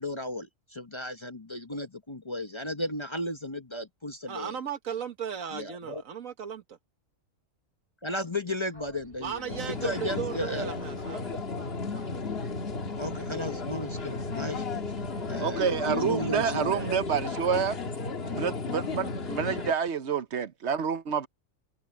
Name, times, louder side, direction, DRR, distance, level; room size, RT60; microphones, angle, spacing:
voice 1, 0.0-4.5 5.5-6.0 8.0-10.8 13.0-14.6 15.3-16.9, left 1 dB, 25° left, 0.9 m, -35 dB
voice 2, 4.3-6.8 9.2-11.3, right 8 dB, 85° right, 1.8 m, -36 dB
Boat Water vehicle, 8.7-17.7, right 1 dB, 45° right, 6.1 m, -53 dB
sound 1, 9.5-19.7, left 4 dB, 50° left, 1.7 m, -34 dB
voice 3, 15.4-17.8 18.3-21.3, right 7 dB, 60° right, 1.1 m, -28 dB
omnidirectional pair, 1.4 m